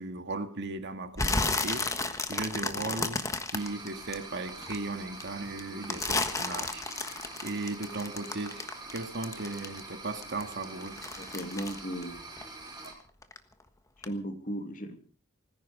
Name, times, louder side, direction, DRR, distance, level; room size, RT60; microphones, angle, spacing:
voice 1, 0.0-3.2 3.5-6.9 7.4-11.0, right 2 dB, 55° right, 1.9 m, -37 dB
sound 1, 1.2-4.8 5.2-9.9 10.2-12.9 13.2-13.6 14.0-14.1, left 3 dB, 15° left, 1.4 m, -32 dB
sound 2, 3.5-12.9, right 2 dB, 20° right, 5.3 m, -45 dB
voice 2, 11.2-12.2 14.0-15.0, right 1 dB, 35° left, 2.6 m, -36 dB
19.0 x 15.5 x 4.8 m
head